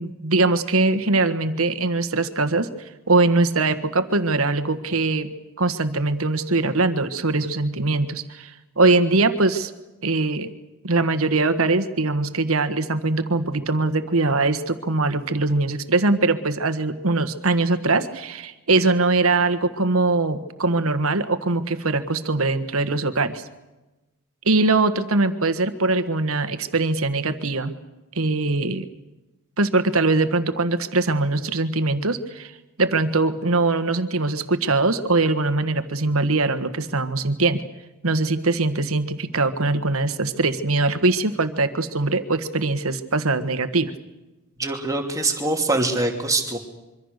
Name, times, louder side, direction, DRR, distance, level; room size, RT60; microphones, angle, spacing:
voice 1, 0.0-2.7 3.1-9.7 10.0-10.5 10.8-23.4 24.4-27.7 28.1-28.9 29.6-32.5 32.8-37.6 38.0-43.9, right 3 dB, 70° right, 10 dB, 1.6 m, -22 dB
voice 2, 44.6-46.6, right 2 dB, 15° right, 2 dB, 2.8 m, -23 dB
25.5 x 24.5 x 6.6 m, 1.1 s
head